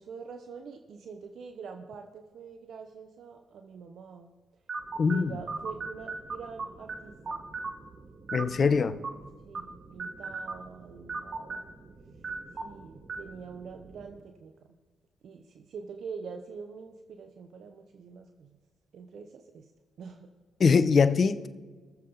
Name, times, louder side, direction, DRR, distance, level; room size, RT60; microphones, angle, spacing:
voice 1, 0.0-4.3 5.1-7.4 8.3-9.0 9.5-11.7 12.6-14.7 15.2-18.6 18.9-19.7 20.0-20.3, right 5 dB, 65° right, 6 dB, 0.8 m, -45 dB
sound 1, 4.7-14.2, right 3 dB, 50° right, 1.5 m, -40 dB
voice 2, 5.0-5.3 8.3-8.9 20.6-21.5, left 5 dB, 50° left, 13 dB, 0.9 m, -22 dB
22.0 x 7.5 x 4.0 m, 1.4 s
hypercardioid pair, 55°, 0 cm